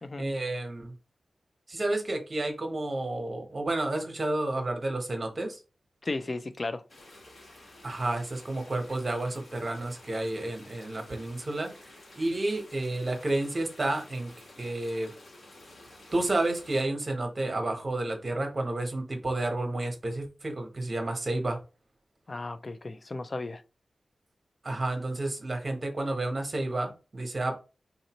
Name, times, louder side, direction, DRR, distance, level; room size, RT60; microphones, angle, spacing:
voice 1, 0.2-0.9 1.7-5.6 7.8-14.3 14.6-15.1 16.1-21.6 24.6-27.5, right 2 dB, 40° right, 1.1 m, -31 dB
voice 2, 6.0-6.8 22.3-23.6, left 2 dB, 35° left, 0.4 m, -35 dB
sound 1, 6.9-16.8, left 1 dB, 65° left, 1.9 m, -52 dB
4.1 x 2.6 x 2.9 m
wide cardioid pair, 105°, 0 cm